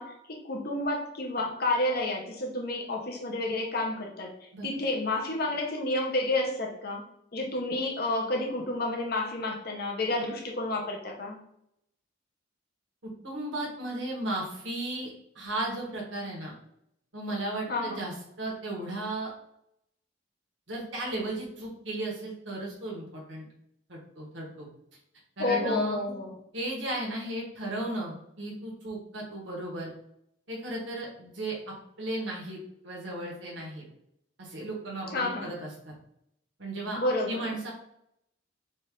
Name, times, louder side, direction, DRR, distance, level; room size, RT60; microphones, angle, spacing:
voice 1, 0.0-7.0 7.3-11.4 17.7-18.1 25.4-26.3 35.1-35.5 37.0-37.6, left 2 dB, 50° left, 0 dB, 0.9 m, -30 dB
voice 2, 13.0-16.5 17.1-19.3 20.7-23.4 23.9-24.7 25.4-26.0 26.5-29.9 30.5-31.6 32.0-33.9 34.4-35.9 36.6-37.0 37.3-37.7, right 1 dB, 65° right, -3 dB, 1.3 m, -35 dB
4.4 x 2.6 x 3.7 m, 0.75 s
head